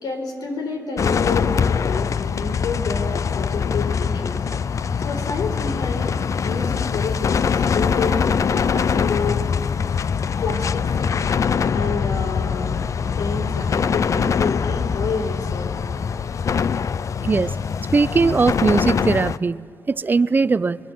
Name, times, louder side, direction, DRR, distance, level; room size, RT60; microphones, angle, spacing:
voice 1, 0.0-4.4 5.0-6.1 6.4-9.4 10.4-12.8 13.0-15.8, left 4 dB, 75° left, 4 dB, 4.4 m, -29 dB
sound 1, 1.0-19.4, left 6 dB, 50° left, 0.5 m, -23 dB
voice 2, 17.2-17.5 17.9-20.8, right 4 dB, 30° right, 16 dB, 0.6 m, -19 dB
24.5 x 22.0 x 7.5 m, 2.1 s
cardioid pair, 100°, 7 cm